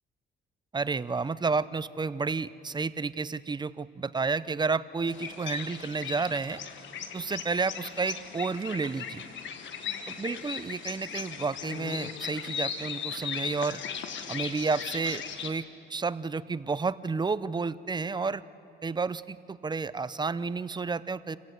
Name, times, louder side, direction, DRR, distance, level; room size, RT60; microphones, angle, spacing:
voice 1, 0.7-6.6 7.1-9.2 10.2-13.8 14.3-18.4 18.8-21.4, right 4 dB, 20° right, 17 dB, 0.5 m, -31 dB
sound 1, 5.1-15.5, left 7 dB, 70° left, 1.5 m, -38 dB
27.0 x 16.5 x 8.0 m, 2.9 s
cardioid pair, 90°, 20 cm